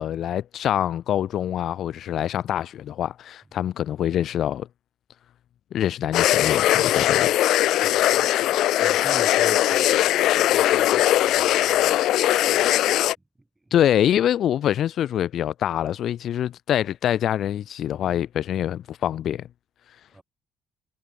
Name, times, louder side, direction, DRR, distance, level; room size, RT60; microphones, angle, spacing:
voice 1, 0.0-4.7 5.7-7.3 13.7-19.5, left 10 dB, 55° left, 1.2 m, -25 dB
sound 1, 6.1-13.1, left 14 dB, 70° left, 0.7 m, -20 dB
voice 2, 7.6-13.1 13.4-13.7 20.1-20.2, right 2 dB, 10° right, 6.2 m, -45 dB
cardioid pair, 135°, 0 cm